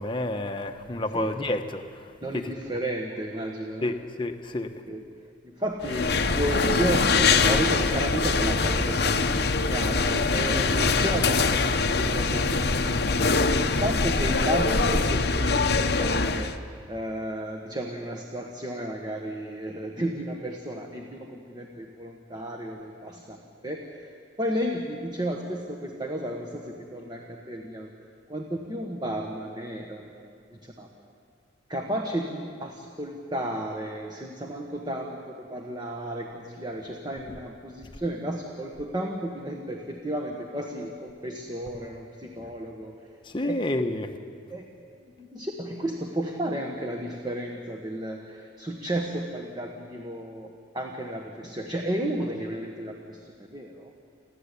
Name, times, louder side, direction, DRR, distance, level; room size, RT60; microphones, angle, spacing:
voice 1, 0.0-2.5 3.8-4.7 42.4-42.5 43.2-44.1, left 1 dB, 25° left, 6 dB, 1.0 m, -30 dB
voice 2, 2.2-3.9 4.9-5.0 5.4-13.0 13.6-16.5 16.9-23.4 23.6-24.1 24.4-27.9 28.3-30.9 31.7-43.0 43.4-43.6 44.5-44.6 45.0-53.2 53.5-53.9, right 1 dB, 20° right, 1 dB, 1.3 m, -33 dB
sound 1, 5.8-16.6, left 4 dB, 55° left, 0.9 m, -23 dB
30.0 x 11.5 x 8.4 m, 2.2 s
head